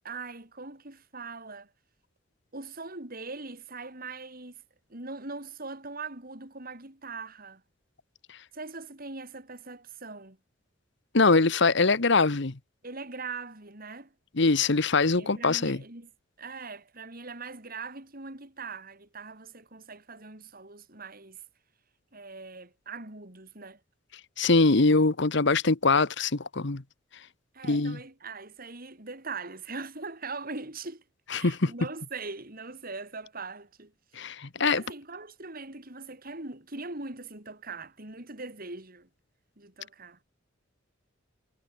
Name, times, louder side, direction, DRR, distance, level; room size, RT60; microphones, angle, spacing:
voice 1, 0.0-1.7 2.5-4.6 4.9-7.6 8.5-10.4 12.8-14.1 15.2-16.1 16.4-21.4 22.1-23.8 27.5-33.9 34.6-39.1 39.6-40.2, right 3 dB, 50° right, 4.7 m, -41 dB
voice 2, 11.1-12.5 14.4-15.8 24.4-26.8 27.7-28.0 31.3-31.7 34.2-34.8, left 3 dB, 65° left, 1.2 m, -23 dB
head